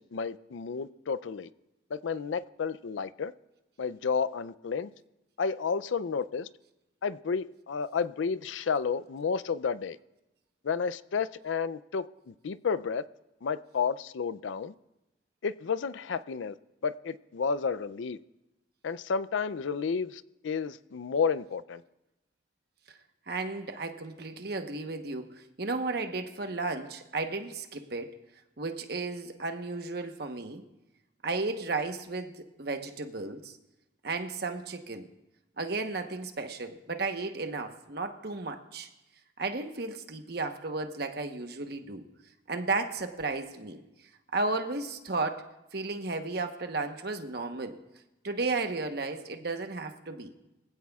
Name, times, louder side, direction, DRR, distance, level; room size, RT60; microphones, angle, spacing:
voice 1, 0.0-1.5 1.9-3.3 3.8-4.9 5.4-6.5 7.0-10.0 10.6-13.0 13.4-14.7 15.4-16.5 16.8-18.2 18.8-21.8, left 5 dB, 85° left, 0.4 m, -31 dB
voice 2, 23.3-28.2 28.6-30.6 31.2-33.6 34.0-35.1 35.6-38.9 39.4-42.1 42.5-43.8 44.3-45.5 45.7-47.8 48.2-50.3, right 3 dB, 55° right, 1.1 m, -34 dB
23.0 x 16.0 x 2.4 m
head